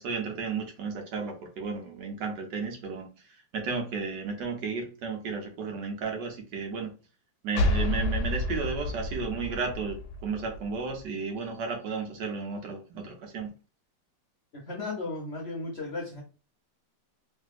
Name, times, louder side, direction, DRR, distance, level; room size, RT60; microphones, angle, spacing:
voice 1, 0.0-3.1 3.5-6.9 7.4-13.5, right 4 dB, 75° right, 3 dB, 1.4 m, -33 dB
sound 1, 7.5-11.1, left 1 dB, 75° left, 1.1 m, -30 dB
voice 2, 14.7-16.2, left 3 dB, 50° left, -2 dB, 0.8 m, -35 dB
3.3 x 2.6 x 2.4 m, 0.34 s
omnidirectional pair, 1.9 m